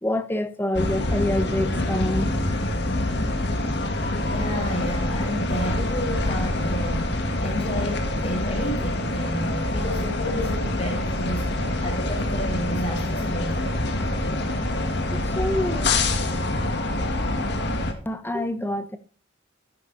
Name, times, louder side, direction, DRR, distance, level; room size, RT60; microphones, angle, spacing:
voice 1, 0.0-2.3 15.1-15.9 18.0-19.0, left 1 dB, 10° left, 1.0 m, -26 dB
sound 1, 0.7-17.9, left 1 dB, 65° left, 1.7 m, -26 dB
voice 2, 4.2-7.0 7.4-14.0, equal, 35° left, 4.7 m, -31 dB
13.5 x 10.5 x 2.7 m
head